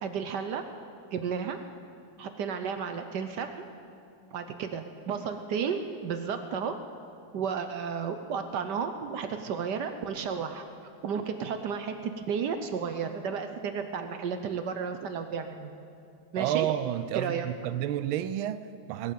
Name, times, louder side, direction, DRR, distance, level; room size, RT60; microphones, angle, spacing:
voice 1, 0.0-0.6 1.1-1.6 2.2-3.7 4.3-6.7 7.3-10.6 11.0-15.7 16.3-16.7 17.1-17.5, right 6 dB, 65° right, 7 dB, 1.2 m, -33 dB
voice 2, 16.4-19.1, right 12 dB, 85° right, 13 dB, 1.4 m, -30 dB
18.0 x 8.8 x 7.4 m, 2.4 s
omnidirectional pair, 2.2 m